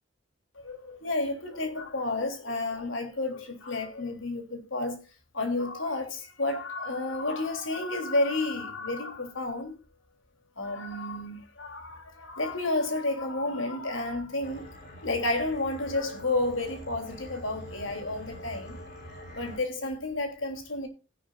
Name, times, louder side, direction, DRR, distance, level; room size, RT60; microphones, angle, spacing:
voice 1, 0.6-5.0 5.3-9.7 10.6-14.7 15.0-18.8 19.3-20.9, left 2 dB, 80° left, 3.3 m, -31 dB
sound 1, 14.4-19.6, equal, 50° left, 6.8 m, -45 dB
15.5 x 10.5 x 2.5 m
head